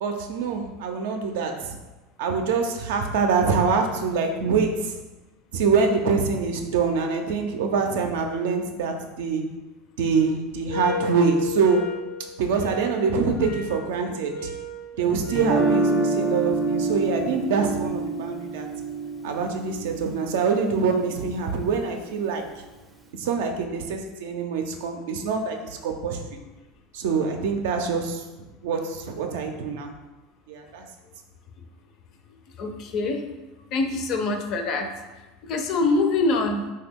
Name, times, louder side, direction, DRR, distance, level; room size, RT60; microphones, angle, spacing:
voice 1, 0.0-1.8 2.2-5.0 5.5-9.6 10.0-11.9 12.4-14.5 15.0-18.7 19.2-22.5 23.1-26.4 26.9-28.2 28.6-29.9 30.5-30.9, right 5 dB, 75° right, 4 dB, 0.4 m, -25 dB
sound 1, 10.7-15.6, left 2 dB, 90° left, 0.8 m, -35 dB
Guitar, 15.3-21.4, right 3 dB, 15° right, 0.4 m, -27 dB
voice 2, 32.6-33.3 33.7-34.9 35.4-36.7, left 3 dB, 55° left, 5 dB, 0.4 m, -24 dB
2.9 x 2.2 x 3.5 m, 1.1 s
hypercardioid pair, 95°, 0 cm